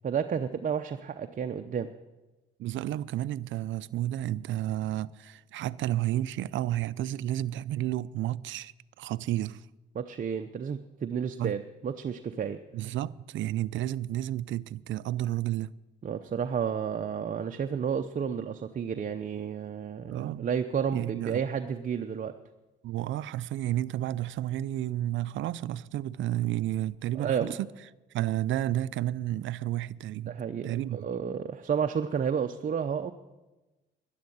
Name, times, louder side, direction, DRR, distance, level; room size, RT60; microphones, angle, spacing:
voice 1, 0.0-1.9 9.9-12.6 16.0-22.4 27.2-27.5 30.3-33.1, right 7 dB, 40° right, 0.7 m, -31 dB
voice 2, 2.6-8.7 9.0-9.7 11.4-11.6 12.7-15.7 20.1-20.5 20.9-21.4 22.8-27.7 28.1-31.1, right 13 dB, 75° right, 0.5 m, -31 dB
12.0 x 11.0 x 8.5 m
cardioid pair, 90°, 20 cm